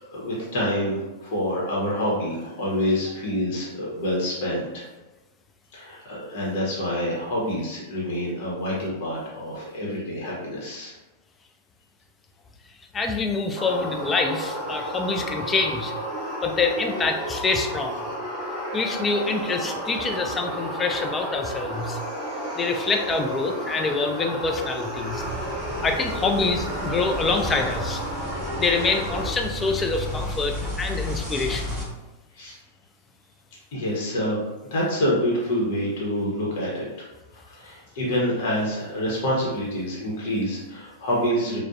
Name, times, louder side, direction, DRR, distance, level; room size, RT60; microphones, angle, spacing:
voice 1, 0.1-4.9 5.7-10.9 32.3-32.6 33.7-34.4 34.7-36.9 37.4-41.6, equal, 60° left, -5 dB, 0.8 m, -27 dB
voice 2, 12.9-15.9 16.4-18.0 18.7-22.0 22.6-25.2 25.8-28.0 28.6-31.8, left 4 dB, 20° left, 4 dB, 0.3 m, -26 dB
sound 1, 13.5-29.3, equal, 15° right, 1.2 m, -32 dB
sound 2, 25.1-31.8, left 1 dB, 5° left, 0.9 m, -33 dB
2.5 x 2.0 x 2.4 m, 1.1 s
hypercardioid pair, 115°, 0 cm